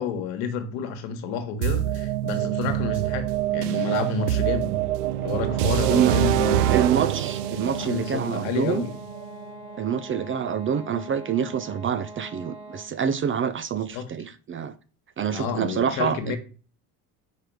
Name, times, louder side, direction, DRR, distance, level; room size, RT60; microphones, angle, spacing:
voice 1, 0.0-4.7 5.2-6.7 7.5-8.9 13.9-14.1 15.3-16.4, left 6 dB, 70° left, 1.4 m, -30 dB
sound 1, 1.6-9.5, right 12 dB, 85° right, 0.5 m, -25 dB
sound 2, 5.3-13.0, right 1 dB, 10° right, 1.6 m, -43 dB
voice 2, 6.7-8.8 9.8-14.7 15.2-16.4, right 8 dB, 30° right, 0.5 m, -26 dB
4.9 x 4.7 x 4.7 m
hypercardioid pair, 75°, 46 cm